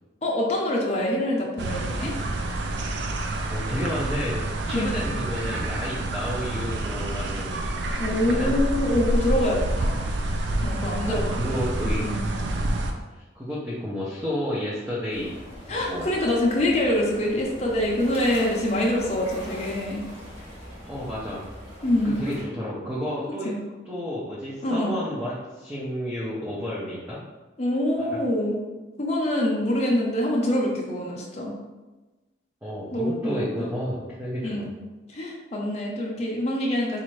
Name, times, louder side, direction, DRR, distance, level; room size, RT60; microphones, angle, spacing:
voice 1, 0.2-2.1 4.7-4.9 8.0-10.0 10.6-11.6 12.0-12.2 15.7-20.0 21.8-22.2 23.4-23.6 24.6-24.9 27.6-28.6 29.0-31.5 32.9-33.6 34.4-34.6 35.1-37.0, left 1 dB, 35° left, -3 dB, 0.6 m, -25 dB
sound 1, 1.6-12.9, right 1 dB, 70° right, 0.4 m, -28 dB
voice 2, 3.3-4.4 4.7-7.6 8.1-8.5 10.0-10.1 11.0-12.2 13.3-15.4 15.7-16.1 20.9-21.4 22.0-23.5 23.9-27.2 28.0-28.2 32.6-34.7, equal, 10° right, -8 dB, 0.6 m, -31 dB
sound 2, 15.1-22.4, equal, 30° right, 0.9 m, -41 dB
4.2 x 2.5 x 3.1 m, 1.2 s
head